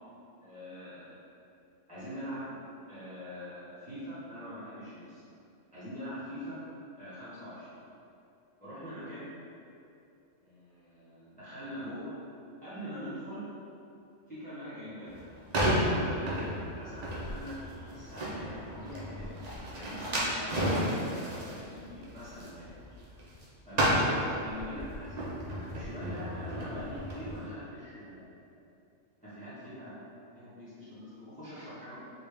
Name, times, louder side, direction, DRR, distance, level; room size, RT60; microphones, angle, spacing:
voice 1, 0.4-1.2 1.9-2.5 2.9-5.2 5.7-6.6 7.0-7.8 8.6-9.3 10.4-12.1 12.6-13.5 14.3-15.2 15.7-17.5 17.9-19.3 19.7-20.7 21.1-22.7 23.7-25.1 25.6-28.6 29.2-32.0, equal, 5° left, -14 dB, 1.0 m, -43 dB
sound 1, 15.1-23.4 23.7-27.3, equal, 50° right, 0.5 m, -32 dB
3.5 x 2.4 x 3.3 m, 2.7 s
omnidirectional pair, 1.3 m